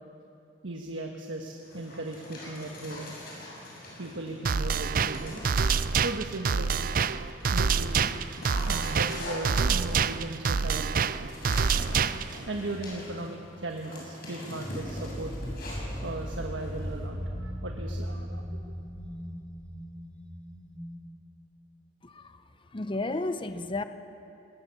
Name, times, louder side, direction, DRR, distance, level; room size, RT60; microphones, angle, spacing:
voice 1, 0.6-3.1 4.0-5.6 5.9-6.8 7.5-8.2 8.6-11.3 11.8-15.3 16.0-18.7, right 2 dB, 90° right, 2 dB, 1.3 m, -37 dB
Dog, 1.6-4.5 5.0-6.1 6.7-17.1, left 1 dB, 55° left, 7.0 m, -43 dB
sound 1, 4.4-12.4, right 5 dB, 50° right, 0.5 m, -27 dB
sound 2, 12.5-21.0, equal, 10° left, 5.4 m, -38 dB
voice 2, 22.0-22.4 22.7-23.8, left 2 dB, 25° left, 10 dB, 0.7 m, -32 dB
20.5 x 19.5 x 6.9 m, 2.8 s
head